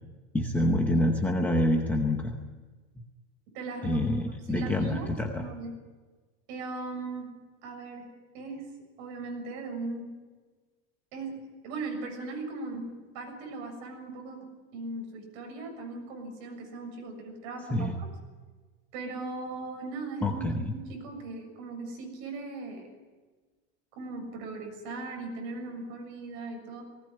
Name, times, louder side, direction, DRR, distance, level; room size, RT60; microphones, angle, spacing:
voice 1, 0.3-2.4 3.8-5.5 17.7-18.0 20.2-20.6, left 1 dB, 5° left, 2 dB, 0.8 m, -27 dB
voice 2, 3.5-4.0 4.5-5.7 6.5-7.3 7.6-8.1 8.3-8.7 9.0-10.1 11.1-12.9 13.1-14.5 14.7-17.9 18.9-20.4 20.7-22.9 23.9-26.8, right 3 dB, 45° right, 3 dB, 7.0 m, -38 dB
19.5 x 19.0 x 9.9 m, 1.4 s
supercardioid pair, 175°, 36 cm